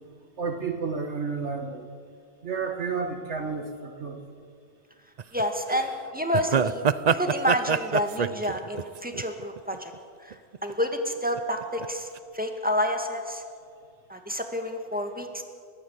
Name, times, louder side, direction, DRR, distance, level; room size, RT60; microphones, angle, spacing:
voice 1, 0.4-1.9 2.4-4.2, right 5 dB, 70° right, 3 dB, 2.0 m, -31 dB
Man Laughing, 5.2-5.4 5.7-5.8 6.3-9.9 10.3-10.7 11.4-11.9 12.2-12.3, right 7 dB, 45° right, 0.6 m, -26 dB
voice 2, 5.3-9.9 10.2-10.3 10.6-12.1 12.3-13.4 14.1-15.4, equal, 5° right, 4 dB, 2.1 m, -29 dB
30.0 x 13.5 x 8.3 m, 2.2 s
omnidirectional pair, 1.2 m